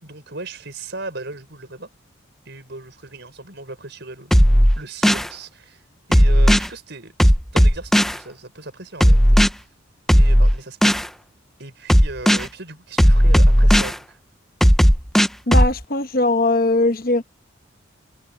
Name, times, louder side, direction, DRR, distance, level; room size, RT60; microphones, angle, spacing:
voice 1, 0.0-1.9 2.4-4.3 4.7-5.8 6.1-7.1 7.5-9.6 10.1-11.0 11.6-14.2, right 2 dB, 55° right, 6.3 m, -37 dB
sound 1, 4.3-5.3 6.1-6.7 7.2-8.2 9.0-9.5 10.1-11.1 11.9-12.5 13.0-13.9 14.6-15.7, equal, ahead, 0.6 m, -14 dB
voice 2, 15.5-17.2, left 2 dB, 45° left, 1.1 m, -19 dB
head